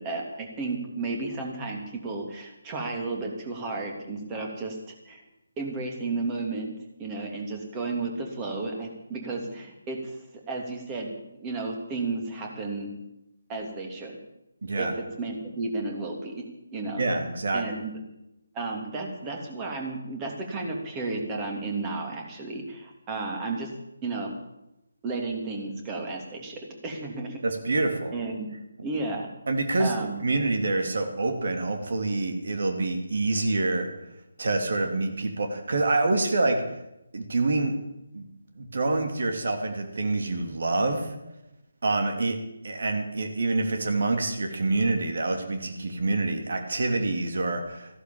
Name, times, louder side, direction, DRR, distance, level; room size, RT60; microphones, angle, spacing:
voice 1, 0.0-4.8 5.1-5.2 5.6-10.1 10.5-11.1 11.4-12.9 13.5-14.1 14.8-14.9 15.2-16.5 16.7-17.1 17.5-17.9 18.5-23.7 24.0-24.3 25.0-27.4 28.1-28.5 28.8-29.3 29.8-30.2, right 3 dB, 20° right, 1 dB, 3.0 m, -33 dB
voice 2, 14.6-14.9 17.0-17.6 27.4-28.2 29.5-30.0 30.2-33.9 34.4-36.6 37.1-37.7 38.1-38.3 38.6-41.1 41.8-42.4 42.6-48.0, right 2 dB, 55° right, 5 dB, 3.0 m, -26 dB
15.0 x 11.5 x 7.3 m, 0.89 s
figure-of-eight pair, 150°, 0 cm